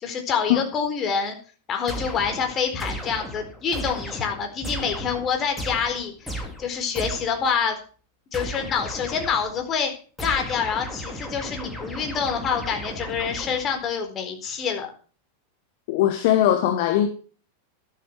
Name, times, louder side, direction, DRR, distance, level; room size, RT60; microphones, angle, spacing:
voice 1, 0.0-1.3 1.7-6.3 6.6-7.8 8.3-9.9 10.2-14.9, left 6 dB, 30° left, 4.3 m, -26 dB
sound 1, 1.9-7.5 8.3-9.6 10.2-13.9, equal, 5° left, 3.4 m, -35 dB
voice 2, 15.9-17.1, left 11 dB, 50° left, 1.5 m, -20 dB
13.0 x 12.0 x 4.7 m
figure-of-eight pair, 90°, 0 cm